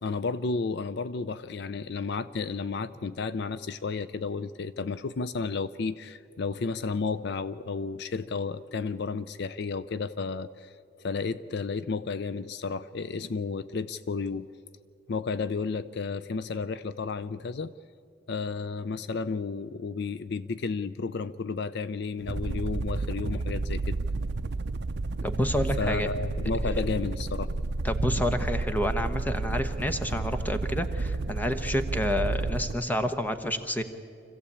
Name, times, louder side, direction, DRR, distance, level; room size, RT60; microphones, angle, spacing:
voice 1, 0.0-10.7 11.0-14.5 15.1-17.7 18.3-23.9 25.8-27.5, left 4 dB, 60° left, 15 dB, 0.5 m, -32 dB
sound 1, 22.2-32.8, right 3 dB, 60° right, 0.5 m, -31 dB
voice 2, 25.2-26.1 27.8-33.8, left 1 dB, 10° left, 8 dB, 1.0 m, -29 dB
25.5 x 15.5 x 8.5 m, 2.4 s
head